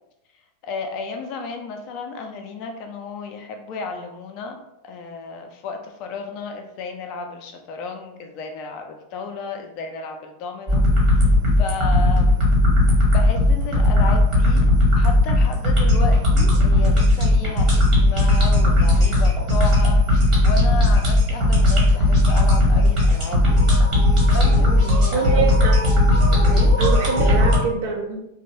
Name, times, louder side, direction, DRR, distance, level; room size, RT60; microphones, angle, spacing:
voice 1, 0.6-4.6 4.8-11.2 11.6-12.4 13.1-14.6 14.9-20.0 20.4-23.7 24.3-25.5 26.3-26.8, left 4 dB, 40° left, 4 dB, 0.4 m, -33 dB
sound 1, 10.7-27.6, left 1 dB, 35° right, 1.1 m, -16 dB
voice 2, 25.1-25.8 26.8-28.2, right 5 dB, 55° right, 0 dB, 0.6 m, -24 dB
2.9 x 2.0 x 2.6 m, 0.86 s
figure-of-eight pair, 90°, 0 cm